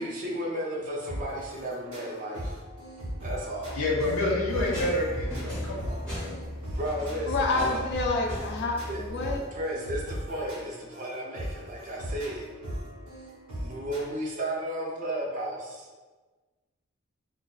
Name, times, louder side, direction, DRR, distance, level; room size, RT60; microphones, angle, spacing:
voice 1, 0.0-2.6 3.2-3.7 6.7-7.8 8.9-9.0 9.5-12.4 13.6-15.9, right 1 dB, 40° right, -2 dB, 0.4 m, -33 dB
sound 1, 1.1-14.0, equal, 90° right, 1.0 m, -39 dB
sound 2, 3.6-9.3, left 1 dB, 5° left, 0.7 m, -37 dB
voice 2, 3.7-6.5, left 2 dB, 90° left, -3 dB, 0.6 m, -29 dB
voice 3, 7.3-9.4, left 3 dB, 50° left, 2 dB, 0.3 m, -28 dB
2.4 x 2.2 x 2.3 m, 1.3 s
head